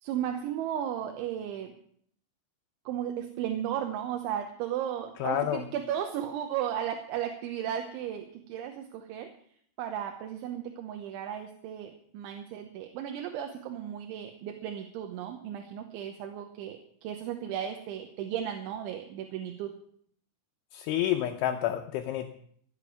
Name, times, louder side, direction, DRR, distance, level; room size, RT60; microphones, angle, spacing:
voice 1, 0.0-1.7 2.9-9.3 9.8-19.7, right 10 dB, 75° right, 5 dB, 3.3 m, -35 dB
voice 2, 5.2-5.6 20.7-22.3, left 12 dB, 80° left, 5 dB, 3.0 m, -29 dB
14.0 x 8.0 x 9.2 m, 0.63 s
omnidirectional pair, 5.8 m